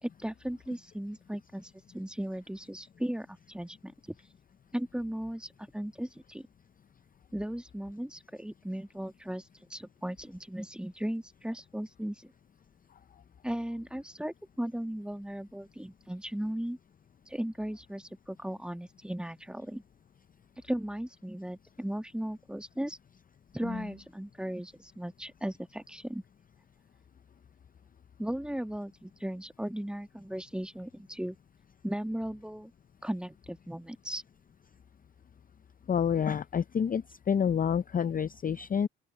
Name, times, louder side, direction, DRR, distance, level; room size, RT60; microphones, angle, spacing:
voice 1, 0.0-4.1 4.7-6.5 7.3-12.3 13.4-16.8 17.3-19.8 20.6-23.0 23.5-26.2 28.2-31.4 31.8-32.7 33.0-34.2, right 1 dB, 5° right, 1.5 m, -37 dB
voice 2, 35.9-38.9, left 7 dB, 30° left, 0.5 m, -28 dB
open air
cardioid pair, 90°, 30 cm